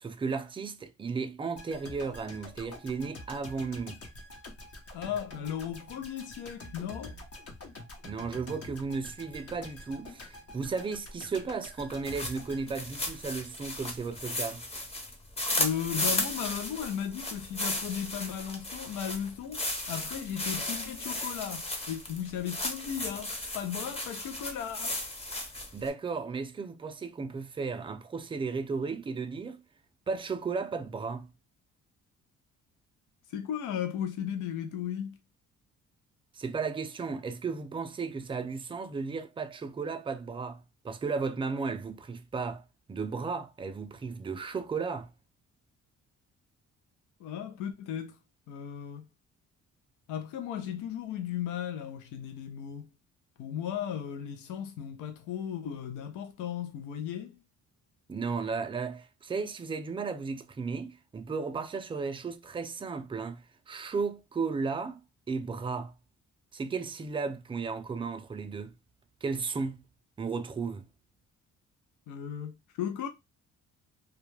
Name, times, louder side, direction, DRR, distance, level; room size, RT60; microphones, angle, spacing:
voice 1, 0.0-4.0 8.0-14.6 25.7-29.6 30.1-31.3 36.3-42.6 42.9-45.1 58.1-65.9 66.5-68.7 69.2-69.8 70.2-70.9, right 4 dB, 20° right, 0.3 m, -34 dB
sound 1, 1.6-13.6 13.9-14.0, left 2 dB, 50° left, 0.8 m, -47 dB
voice 2, 4.9-7.2 15.6-25.0 33.3-35.2 47.2-48.2 48.5-49.1 50.1-52.9 53.4-57.4 72.1-73.1, left 9 dB, 85° left, 0.5 m, -36 dB
sound 2, 11.9-25.9, left 1 dB, 20° left, 0.7 m, -35 dB
2.3 x 2.1 x 3.1 m
cardioid pair, 90°, 30 cm